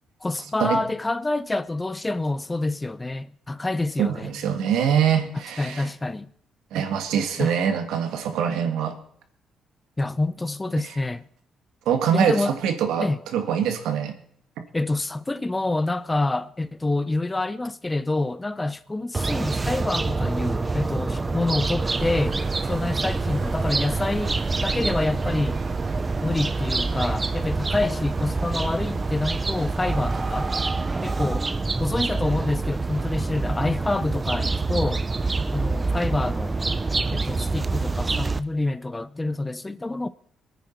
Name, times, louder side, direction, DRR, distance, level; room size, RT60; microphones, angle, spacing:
voice 1, 0.2-4.3 5.6-6.3 7.4-7.6 10.0-11.2 12.1-12.5 13.0-13.2 14.7-25.7 26.2-30.5 31.0-31.5 31.8-35.0 35.5-36.7 37.1-40.1, left 2 dB, 15° left, 0.6 m, -27 dB
voice 2, 4.0-5.9 6.7-9.0 11.9-13.1 13.3-14.2, right 8 dB, 90° right, 1.8 m, -23 dB
sound 1, 19.1-38.4, right 3 dB, 25° right, 0.7 m, -26 dB
sound 2, 21.8-30.7, right 4 dB, 45° right, 1.4 m, -36 dB
21.5 x 9.4 x 4.5 m
cardioid pair, 90°, 0 cm